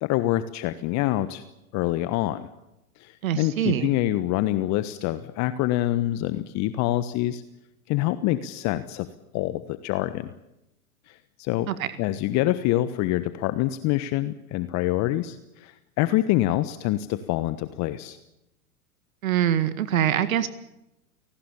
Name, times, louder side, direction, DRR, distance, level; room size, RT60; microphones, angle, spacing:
voice 1, 0.0-1.4 1.7-2.5 3.0-7.4 7.9-9.1 9.3-10.3 11.4-11.7 12.0-18.2, left 15 dB, 40° left, 13 dB, 1.3 m, -26 dB
voice 2, 3.2-3.9 11.7-11.9 19.2-20.5, right 10 dB, 65° right, 12 dB, 1.9 m, -24 dB
29.5 x 19.0 x 7.1 m, 0.89 s
hypercardioid pair, 100°, 44 cm